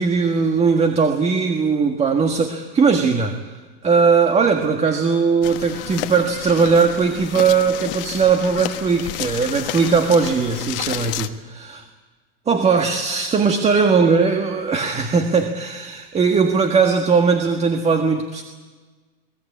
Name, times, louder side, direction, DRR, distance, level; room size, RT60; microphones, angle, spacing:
voice 1, 0.0-3.4 3.8-11.9 12.5-18.4, right 5 dB, 20° right, 5 dB, 1.6 m, -19 dB
sound 1, 5.4-11.3, left 16 dB, 65° left, 1.3 m, -31 dB
21.5 x 19.0 x 8.5 m, 1.4 s
supercardioid pair, 120°, 30 cm